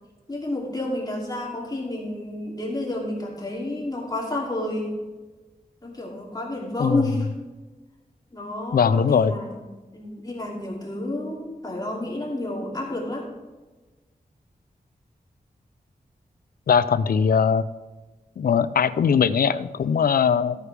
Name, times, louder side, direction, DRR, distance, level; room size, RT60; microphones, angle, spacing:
voice 1, 0.3-4.9 5.8-7.3 8.3-9.6 9.9-13.3, left 1 dB, 25° left, -3 dB, 2.7 m, -30 dB
voice 2, 8.7-9.3 16.7-17.6 18.4-20.6, left 6 dB, 75° left, 15 dB, 0.5 m, -20 dB
15.0 x 9.5 x 3.4 m, 1.2 s
wide cardioid pair, 105°, 15 cm